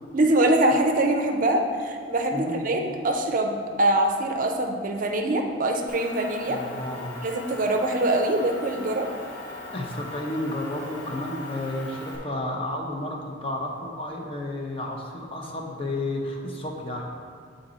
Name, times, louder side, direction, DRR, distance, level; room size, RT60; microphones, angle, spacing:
voice 1, 0.1-6.6 7.2-9.1, right 1 dB, 45° right, 3 dB, 0.5 m, -23 dB
Motor vehicle (road) / Engine, 5.9-12.2, left 2 dB, 70° left, 1.5 m, -39 dB
voice 2, 6.5-7.2 9.7-17.1, left 1 dB, 30° left, 0 dB, 0.7 m, -32 dB
8.4 x 3.9 x 3.9 m, 2.2 s
head